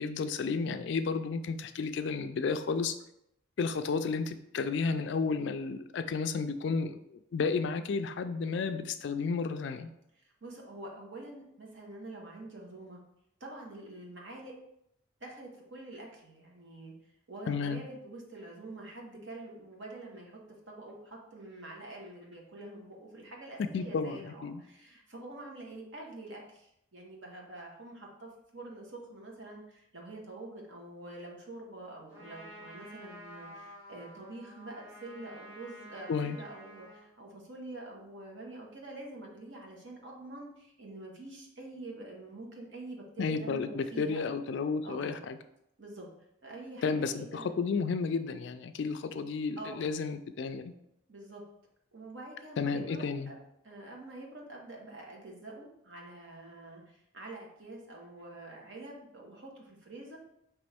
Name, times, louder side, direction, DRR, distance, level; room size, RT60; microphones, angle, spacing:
voice 1, 0.0-3.0 3.6-7.0 7.3-9.9 17.5-17.8 23.6-24.6 36.1-36.4 43.2-45.4 46.8-50.7 52.6-53.3, left 5 dB, 60° left, 10 dB, 0.3 m, -32 dB
voice 2, 10.1-13.0 13.4-14.5 15.2-16.9 17.3-20.4 20.7-44.3 44.8-45.3 45.8-46.1 46.4-47.5 49.6-49.9 51.1-51.4 51.9-60.2, right 2 dB, 65° right, -1 dB, 1.0 m, -46 dB
Trumpet, 32.1-37.1, equal, 10° right, 1.7 m, -50 dB
5.1 x 3.0 x 3.4 m, 0.78 s
head